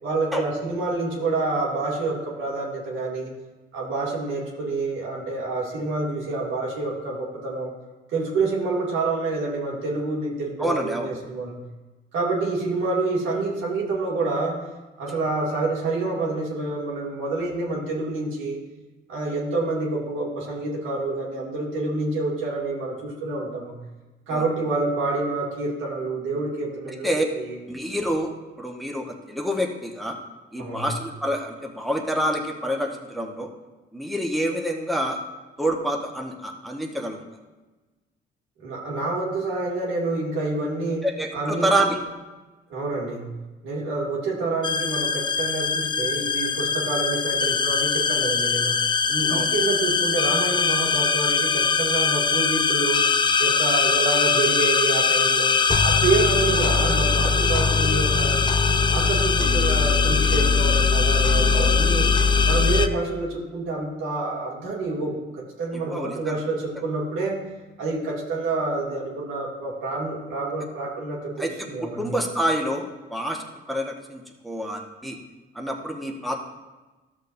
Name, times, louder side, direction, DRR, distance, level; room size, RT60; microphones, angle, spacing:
voice 1, 0.0-3.3 3.7-7.7 8.1-11.6 12.1-14.6 15.0-18.6 19.1-23.8 24.3-27.6 30.6-30.9 38.6-41.1 41.3-41.7 42.7-43.3 43.6-48.8 49.1-53.1 53.4-55.6 55.8-58.4 58.9-62.1 62.4-67.4 67.8-72.0, right 3 dB, 90° right, -4 dB, 2.4 m, -27 dB
voice 2, 10.6-11.1 24.3-24.4 27.0-27.2 27.7-28.3 28.6-30.2 30.5-33.5 33.9-35.2 35.6-37.2 41.0-42.0 49.3-49.5 61.5-61.7 65.9-66.4 71.4-71.7 72.0-73.4 73.7-75.2 75.5-76.4, right 1 dB, ahead, 0 dB, 1.2 m, -27 dB
sound 1, 44.6-62.9, left 5 dB, 25° left, 0.5 m, -21 dB
13.5 x 6.5 x 2.7 m, 1.2 s
cardioid pair, 90°, 20 cm